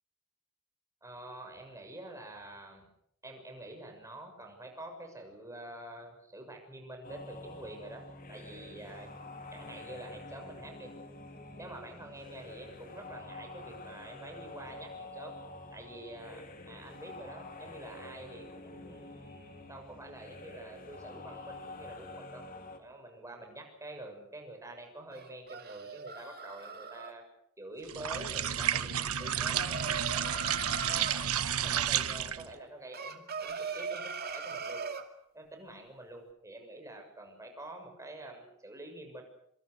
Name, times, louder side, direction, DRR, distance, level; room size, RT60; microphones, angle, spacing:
voice 1, 1.0-2.8 3.2-9.1 9.5-10.9 11.6-15.3 15.7-22.4 22.8-27.2 27.6-30.5 30.9-34.8 35.3-39.2, right 1 dB, 15° right, 3 dB, 6.7 m, -47 dB
sound 1, 7.0-22.8, left 2 dB, 40° left, 3.4 m, -47 dB
sound 2, 25.1-27.1 29.2-31.2 32.9-35.1, right 5 dB, 45° right, 2.5 m, -39 dB
sound 3, 27.9-32.5, right 9 dB, 70° right, 1.4 m, -31 dB
26.5 x 26.0 x 6.5 m, 0.73 s
head